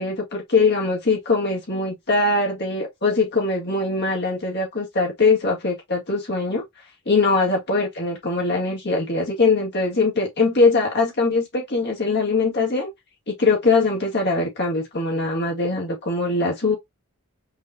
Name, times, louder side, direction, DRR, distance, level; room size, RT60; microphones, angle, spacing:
voice 1, 0.0-6.6 7.1-12.9 13.3-16.8, left 3 dB, 50° left, 2.1 m, -22 dB
5.4 x 3.0 x 2.4 m
head